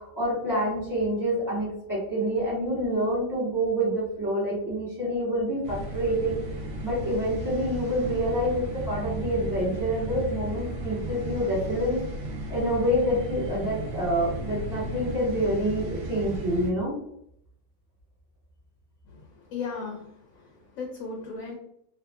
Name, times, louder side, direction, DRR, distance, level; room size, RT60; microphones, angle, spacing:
voice 1, 0.0-6.4 6.8-12.0 12.5-16.9, equal, 15° right, -6 dB, 1.0 m, -27 dB
sound 1, 5.6-16.7, right 2 dB, 70° right, 0.8 m, -35 dB
voice 2, 19.1-21.6, left 4 dB, 75° left, 0 dB, 1.0 m, -37 dB
2.7 x 2.4 x 2.3 m, 0.73 s
omnidirectional pair, 1.5 m